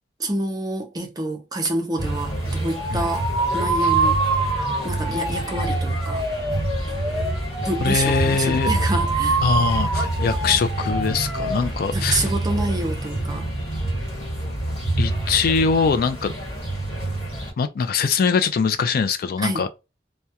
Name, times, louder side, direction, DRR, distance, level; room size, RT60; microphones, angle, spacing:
voice 1, 0.2-3.3 3.5-4.3 4.8-6.3 7.6-9.4 11.9-13.5 19.4-19.7, right 1 dB, 20° right, 0.5 m, -27 dB
sound 1, 2.0-17.5, right 2 dB, 35° left, 1.3 m, -27 dB
sound 2, 2.7-11.6, right 3 dB, 5° left, 0.8 m, -26 dB
voice 2, 7.8-8.7 9.4-12.2 15.0-16.3 17.6-19.7, left 5 dB, 55° left, 0.3 m, -22 dB
2.3 x 2.1 x 2.7 m
head